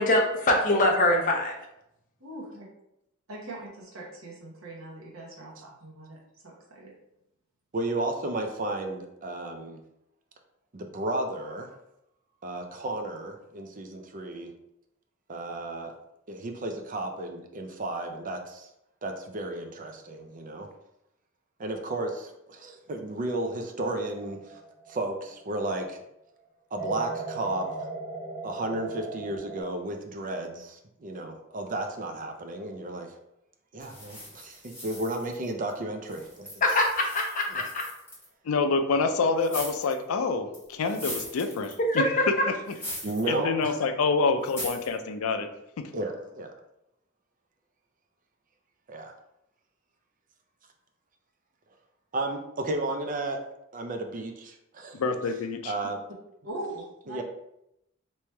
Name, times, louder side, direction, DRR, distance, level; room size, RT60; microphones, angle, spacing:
voice 1, 0.0-1.5 36.6-37.8 41.8-42.3, left 1 dB, 40° left, 1 dB, 0.6 m, -23 dB
voice 2, 2.2-2.7 3.3-6.2 6.4-6.9 56.4-57.2, right 1 dB, 75° right, -3 dB, 1.0 m, -41 dB
voice 3, 7.7-9.8 10.7-11.8 12.4-14.5 15.3-15.9 16.3-18.7 19.0-20.7 21.6-24.6 24.9-26.0 26.7-27.9 28.4-33.1 33.7-36.5 37.5-37.6 43.0-43.7 45.9-46.5 48.9-49.1 52.1-53.4 53.7-55.0 55.6-56.0 57.1-57.2, right 2 dB, 40° right, 4 dB, 0.5 m, -33 dB
sound 1, 23.9-25.7 26.8-29.6, right 3 dB, 10° right, 1.1 m, -38 dB
sound 2, 33.8-35.7 36.1-38.3 39.4-40.0 40.5-42.0 42.7-43.3 43.6-43.7 44.4-44.9, left 1 dB, 10° left, 1.5 m, -40 dB
voice 4, 38.4-42.2 43.2-45.5 45.8-45.9 54.9-55.7, left 4 dB, 85° left, 7 dB, 0.4 m, -27 dB
3.1 x 3.0 x 3.3 m, 0.82 s
head